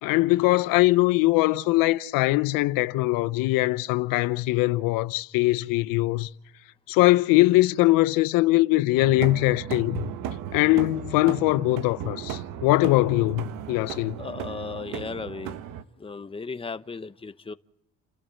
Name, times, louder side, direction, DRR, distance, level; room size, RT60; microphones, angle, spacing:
voice 1, 0.0-6.3 6.9-10.1 10.5-14.2, left 19 dB, 75° left, 0.8 m, -22 dB
sound 1, 8.9-15.8, right 9 dB, 65° right, 1.5 m, -36 dB
voice 2, 14.2-15.6 16.0-17.5, left 4 dB, 15° left, 1.0 m, -36 dB
30.0 x 12.5 x 7.6 m
supercardioid pair, 85°, 34 cm